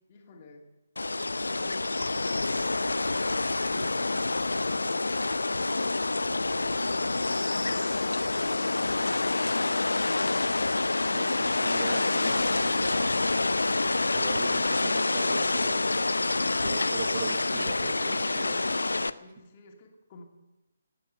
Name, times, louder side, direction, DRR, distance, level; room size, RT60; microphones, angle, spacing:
voice 1, 0.1-0.7 19.1-20.2, left 3 dB, 30° left, 1 dB, 2.7 m, -50 dB
sound 1, 1.0-19.1, left 2 dB, 70° left, 0.6 m, -27 dB
voice 2, 11.1-13.2 14.1-15.9 16.6-18.8, right 7 dB, 35° right, 9 dB, 1.0 m, -40 dB
19.0 x 9.6 x 6.9 m, 1.0 s
figure-of-eight pair, 140°, 0 cm